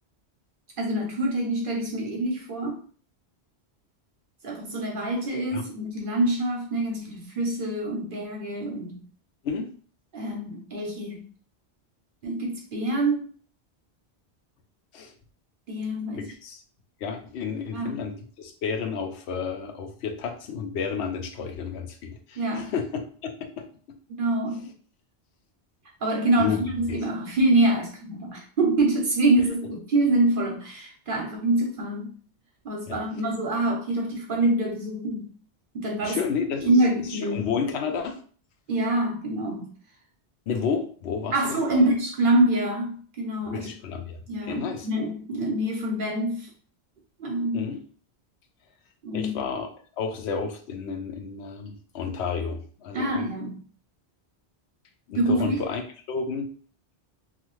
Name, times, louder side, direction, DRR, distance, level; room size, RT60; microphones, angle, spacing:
voice 1, 0.8-2.8 4.4-9.0 10.1-11.2 12.2-13.3 15.7-16.3 17.7-18.0 22.4-22.7 24.1-24.7 26.0-32.2 32.6-35.3 35.7-36.2 36.6-37.5 38.7-39.6 41.3-43.7 44.3-46.5 47.2-47.7 49.0-49.3 52.9-53.5 55.1-55.6, right 1 dB, 55° right, 0 dB, 0.8 m, -25 dB
voice 2, 16.2-16.6 17.0-22.9 23.2-23.7 26.4-26.6 26.9-27.0 32.9-33.0 36.0-36.7 37.1-38.2 40.5-41.9 43.5-44.9 47.5-47.8 49.1-49.7 50.0-53.2 55.1-55.8 56.1-56.5, left 6 dB, 75° left, 5 dB, 0.8 m, -31 dB
2.7 x 2.4 x 3.0 m, 0.43 s
omnidirectional pair, 1.1 m